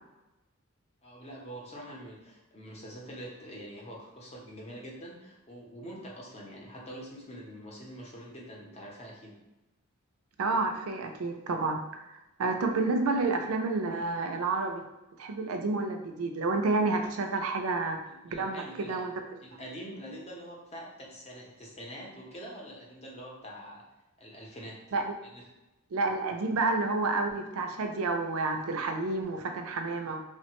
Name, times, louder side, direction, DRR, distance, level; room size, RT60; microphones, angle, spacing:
voice 1, 1.0-9.4 18.1-19.0 19.4-23.9 24.2-24.8 25.2-25.5, equal, 30° left, -2 dB, 0.6 m, -45 dB
voice 2, 10.4-14.8 15.2-18.0 18.4-19.1 24.9-25.1 25.9-30.2, right 3 dB, 80° right, 4 dB, 0.4 m, -30 dB
3.1 x 2.1 x 2.9 m, 1.0 s
head